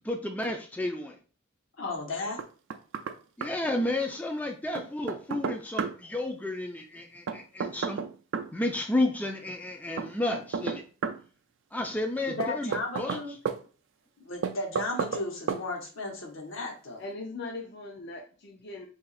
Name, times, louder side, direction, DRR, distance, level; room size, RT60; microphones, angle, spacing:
voice 1, 0.0-1.2 3.4-8.0 8.5-10.8 11.7-12.7 13.0-13.2, left 1 dB, 10° left, 3 dB, 0.3 m, -31 dB
voice 2, 1.8-2.4 12.3-13.3 14.2-17.0, left 2 dB, 80° left, 1 dB, 1.1 m, -34 dB
Knock, 2.4-3.2 3.4-3.5 4.7-6.0 7.3-8.5 10.0-11.2 12.4-13.6 14.4-15.2 15.5-15.6, right 6 dB, 65° right, 0.4 m, -32 dB
voice 3, 17.0-18.9, left 3 dB, 55° left, 0 dB, 0.5 m, -40 dB
2.8 x 2.6 x 4.0 m, 0.37 s
head